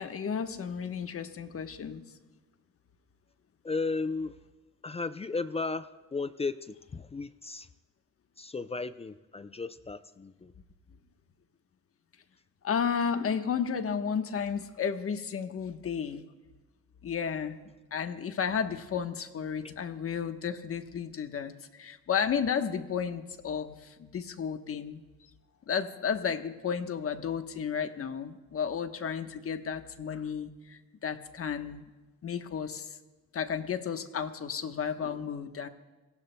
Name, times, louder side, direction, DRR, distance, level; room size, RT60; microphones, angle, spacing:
voice 1, 0.0-2.0 12.6-16.2 17.0-17.6 17.9-25.0 25.7-31.8 32.2-33.0 33.3-35.7, left 7 dB, 50° left, 8 dB, 1.1 m, -33 dB
voice 2, 3.6-4.4 4.8-7.7 8.4-10.5 19.6-19.7, left 3 dB, 20° left, 13 dB, 0.5 m, -35 dB
27.0 x 18.0 x 2.2 m, 1.2 s
cardioid pair, 90°, 30 cm